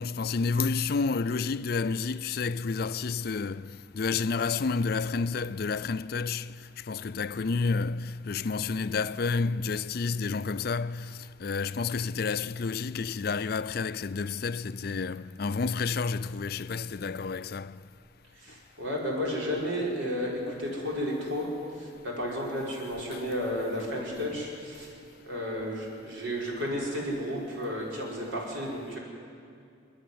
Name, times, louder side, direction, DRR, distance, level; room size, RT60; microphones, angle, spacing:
voice 1, 0.0-17.8 23.1-23.3, left 4 dB, 50° left, 0.4 m, -30 dB
voice 2, 18.3-21.5 21.8-24.9 25.3-29.0, equal, 80° right, 5.3 m, -32 dB
28.0 x 10.0 x 9.6 m
head